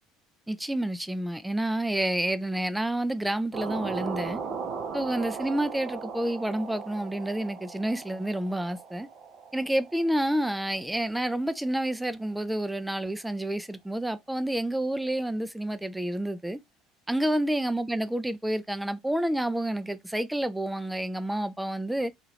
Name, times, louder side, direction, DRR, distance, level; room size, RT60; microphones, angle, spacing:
voice 1, 0.5-4.4 4.9-9.1 9.5-16.6 17.1-22.1, right 1 dB, 5° right, 0.4 m, -29 dB
sound 1, 3.5-11.5, right 5 dB, 45° right, 0.6 m, -38 dB
2.8 x 2.4 x 3.1 m
figure-of-eight pair, 60°, 0 cm